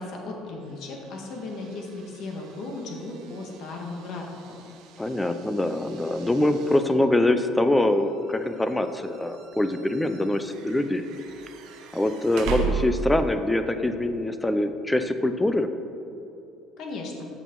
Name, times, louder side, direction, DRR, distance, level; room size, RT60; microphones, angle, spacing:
voice 1, 0.0-4.3 16.8-17.3, left 2 dB, 50° left, 1 dB, 1.7 m, -36 dB
sound 1, 0.6-13.4, right 6 dB, 60° right, 1.0 m, -38 dB
voice 2, 5.0-11.0 11.9-15.7, left 1 dB, 5° left, 9 dB, 0.5 m, -24 dB
13.5 x 6.2 x 4.6 m, 2.9 s
cardioid pair, 170°, 0 cm